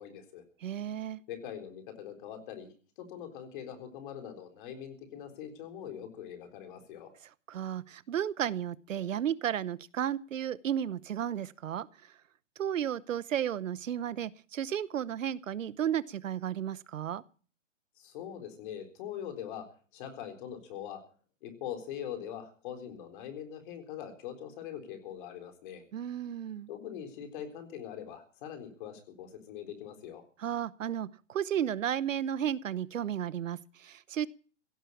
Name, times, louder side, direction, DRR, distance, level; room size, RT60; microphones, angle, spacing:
voice 1, 0.0-0.4 1.3-2.7 3.0-7.1 18.0-19.7 19.9-21.0 21.4-25.8 26.7-30.2, left 9 dB, 40° left, 6 dB, 4.0 m, -42 dB
voice 2, 0.6-1.2 7.5-11.9 12.6-17.2 25.9-26.7 30.4-34.3, right 10 dB, 85° right, 19 dB, 0.9 m, -33 dB
17.0 x 9.2 x 8.4 m, 0.41 s
hypercardioid pair, 150°, 38 cm